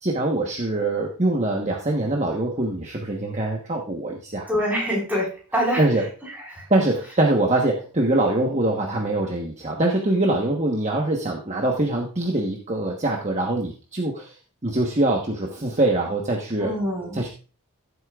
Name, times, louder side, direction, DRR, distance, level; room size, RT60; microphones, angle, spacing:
voice 1, 0.0-4.5 5.8-6.0 6.7-14.4 14.6-16.7 17.1-17.3, right 2 dB, 30° right, 0 dB, 1.2 m, -23 dB
voice 2, 4.5-5.8 6.3-6.7 16.6-17.2, equal, 10° right, -4 dB, 4.6 m, -25 dB
15.0 x 8.1 x 2.4 m, 0.36 s
head